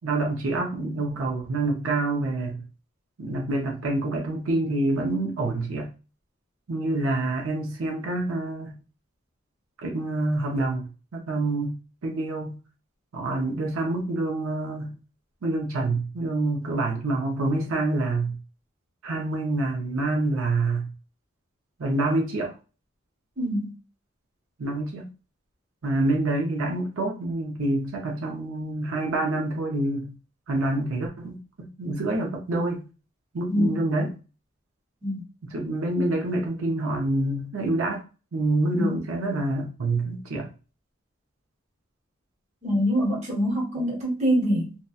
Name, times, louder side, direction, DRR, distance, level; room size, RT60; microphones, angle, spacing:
voice 1, 0.0-2.6 3.2-5.9 6.7-8.8 9.8-11.7 12.0-12.6 13.1-15.0 15.4-18.4 19.0-20.9 21.8-22.5 24.6-25.1 25.8-30.1 30.5-32.8 33.3-34.1 35.5-38.0 38.3-40.5, right 2 dB, 85° right, 0 dB, 0.6 m, -27 dB
voice 2, 23.4-23.7 33.5-33.8 35.0-35.2 38.7-39.0 42.6-44.8, equal, 35° right, -3 dB, 0.9 m, -25 dB
2.7 x 2.1 x 2.3 m, 0.34 s
head